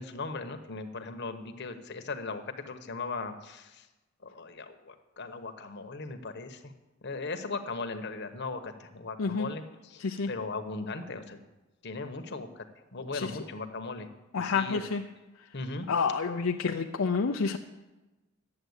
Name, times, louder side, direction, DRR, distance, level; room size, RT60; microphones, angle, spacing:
voice 1, 0.0-3.9 4.2-6.7 7.0-11.4 11.8-14.1 14.4-14.8 15.5-15.9, left 3 dB, 55° left, 7 dB, 1.1 m, -38 dB
voice 2, 14.3-15.0 15.9-17.6, left 5 dB, 75° left, 3 dB, 0.6 m, -29 dB
11.0 x 7.8 x 8.0 m, 1.1 s
head